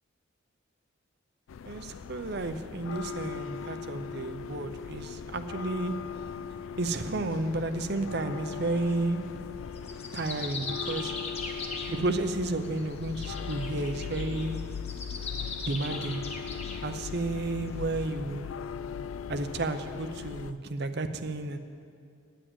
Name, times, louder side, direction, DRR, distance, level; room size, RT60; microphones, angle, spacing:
sound 1, 1.5-20.5, left 7 dB, 80° left, 0.3 m, -39 dB
voice 1, 1.7-5.9 6.8-9.3 10.1-11.1 11.9-14.6 15.6-16.2 16.8-18.5 19.3-21.6, right 2 dB, 55° right, 8 dB, 0.7 m, -32 dB
sound 2, 8.8-9.0 9.7-12.2 12.6-16.8, left 4 dB, 30° left, 0.9 m, -39 dB
10.0 x 7.6 x 8.6 m, 2.4 s
head